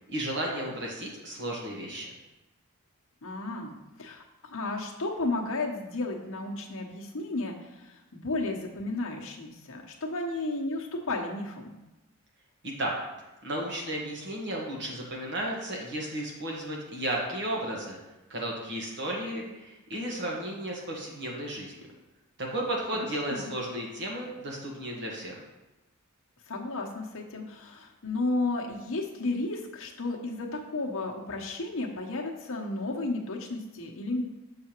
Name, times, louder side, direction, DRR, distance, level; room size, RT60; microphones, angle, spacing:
voice 1, 0.1-2.1 12.6-12.9 13.4-18.0 18.3-21.9 22.4-25.4, right 1 dB, 55° right, -1 dB, 1.4 m, -34 dB
voice 2, 3.2-11.7 23.0-23.5 26.5-34.2, left 2 dB, 65° left, 0 dB, 1.0 m, -33 dB
6.9 x 5.6 x 3.0 m, 1.0 s
head